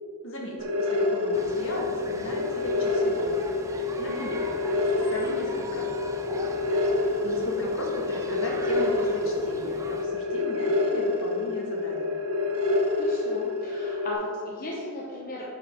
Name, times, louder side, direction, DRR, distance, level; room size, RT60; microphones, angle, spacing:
voice 1, 0.2-3.3 4.0-4.4 4.7-5.9 7.2-12.1, left 1 dB, 60° left, -2 dB, 1.7 m, -36 dB
sound 1, 0.6-14.1, left 3 dB, 70° right, 1.1 m, -27 dB
sound 2, 1.3-10.1, right 2 dB, 15° right, 0.5 m, -40 dB
voice 2, 13.0-15.4, left 1 dB, 40° left, -5 dB, 0.9 m, -36 dB
10.5 x 5.2 x 3.7 m, 2.4 s
head